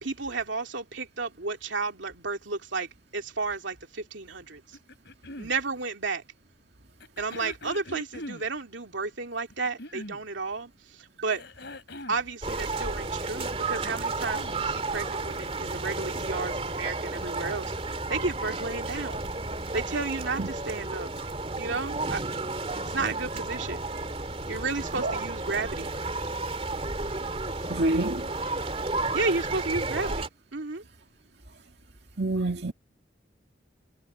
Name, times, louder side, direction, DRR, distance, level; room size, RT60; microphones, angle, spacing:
voice 1, 0.0-4.6 5.4-6.2 7.2-11.4 12.1-17.7 18.1-19.2 19.7-21.1 21.6-22.2 22.9-23.8 24.5-25.9 29.1-30.8, right 4 dB, 80° right, 2.5 m, -32 dB
sound 1, 4.7-5.5 7.0-8.5 9.5-10.2 11.3-12.2 13.7-14.6 15.7-15.8, left 1 dB, 65° left, 3.6 m, -42 dB
sound 2, 12.4-30.3, right 3 dB, 30° right, 2.6 m, -32 dB
voice 2, 27.7-28.3 32.2-32.7, right 2 dB, 65° right, 2.3 m, -27 dB
head